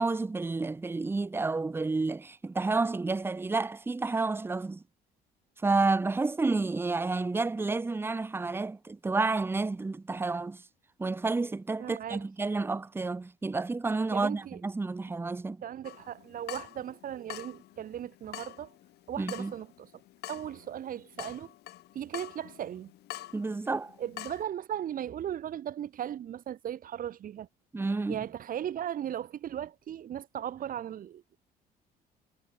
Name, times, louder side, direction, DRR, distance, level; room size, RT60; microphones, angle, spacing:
voice 1, 0.0-4.8 5.6-10.6 11.0-15.6 19.2-19.5 23.3-23.9 27.7-28.2, right 3 dB, 15° right, 0.8 m, -30 dB
voice 2, 11.8-12.3 14.1-14.6 15.6-18.7 19.1-19.9 20.3-21.5 21.9-22.9 24.0-27.5 28.1-31.4, right 10 dB, 55° right, 3.7 m, -37 dB
Water tap faucet / Drip, 15.8-24.4, left 15 dB, 75° left, 4.4 m, -46 dB
cardioid pair, 110°, 17 cm